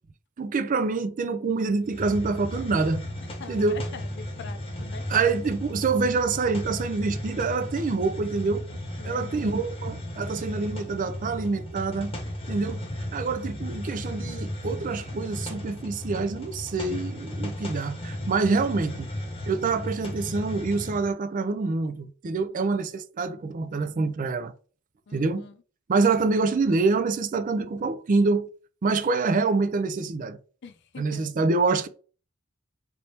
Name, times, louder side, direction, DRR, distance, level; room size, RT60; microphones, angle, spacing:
voice 1, 0.4-3.0 3.5-3.8 5.1-8.6 9.0-12.2 12.5-12.8 13.1-19.1 19.5-24.5 25.1-25.5 25.9-28.5 28.8-30.4 31.0-31.9, right 4 dB, 40° right, 0.4 m, -26 dB
Hiss, 1.8-21.1, left 1 dB, 25° left, 0.9 m, -35 dB
voice 2, 3.4-5.0 9.0-9.7 22.4-22.8 25.1-25.6 30.6-31.3, left 5 dB, 55° left, 0.5 m, -44 dB
4.2 x 3.4 x 2.8 m
head